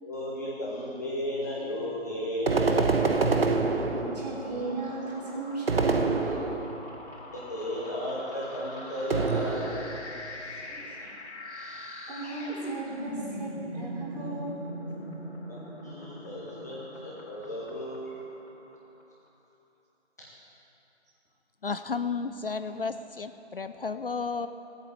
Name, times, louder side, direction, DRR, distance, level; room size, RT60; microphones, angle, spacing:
voice 1, 0.0-2.9 7.3-9.6 15.8-18.2, left 1 dB, 15° left, -7 dB, 1.0 m, -34 dB
sound 1, 2.5-4.4 5.7-6.9 9.1-10.1, right 4 dB, 55° right, 1.1 m, -26 dB
sound 2, 2.7-19.0, equal, 80° left, 3.4 m, -42 dB
voice 2, 3.8-6.3 10.7-11.1 11.7-15.0 22.7-22.9, right 2 dB, 35° right, -4 dB, 3.4 m, -37 dB
voice 3, 21.6-24.5, left 4 dB, 55° left, 10 dB, 0.5 m, -32 dB
16.0 x 8.5 x 7.2 m, 3.0 s
figure-of-eight pair, 170°, 34 cm